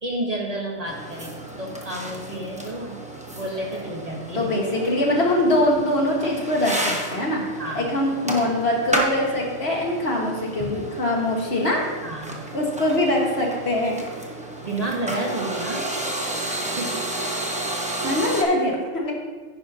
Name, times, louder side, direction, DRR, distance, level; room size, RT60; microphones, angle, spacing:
voice 1, 0.0-3.0 3.3-4.5 7.6-7.9 10.6-10.7 12.0-12.5 14.6-15.9 16.3-17.0, right 1 dB, 30° right, -1 dB, 1.2 m, -31 dB
sound 1, 0.9-18.4, right 1 dB, 5° right, 1.0 m, -32 dB
voice 2, 4.4-7.4 7.8-11.9 12.5-14.0 18.0-19.1, left 1 dB, 55° left, -1 dB, 1.9 m, -23 dB
10.5 x 9.9 x 2.9 m, 1.4 s
omnidirectional pair, 1.3 m